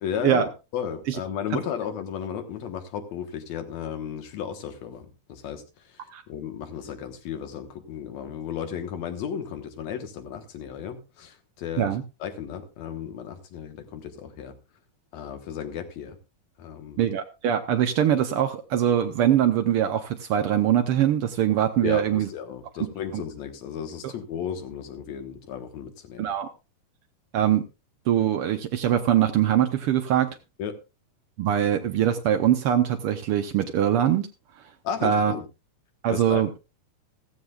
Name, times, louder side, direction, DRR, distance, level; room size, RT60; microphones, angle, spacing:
voice 1, 0.0-5.6 6.3-11.9 12.2-14.5 15.1-16.2 16.6-17.1 21.8-26.3 30.6-30.8 34.8-35.5 36.1-36.4, left 8 dB, 65° left, 7 dB, 2.4 m, -34 dB
voice 2, 17.0-22.3 23.1-23.2 26.2-26.5 27.3-27.6 28.1-30.3 31.4-34.3 35.0-35.3 36.0-36.5, right 10 dB, 85° right, 6 dB, 1.2 m, -22 dB
15.0 x 14.5 x 2.4 m, 0.28 s
omnidirectional pair, 3.7 m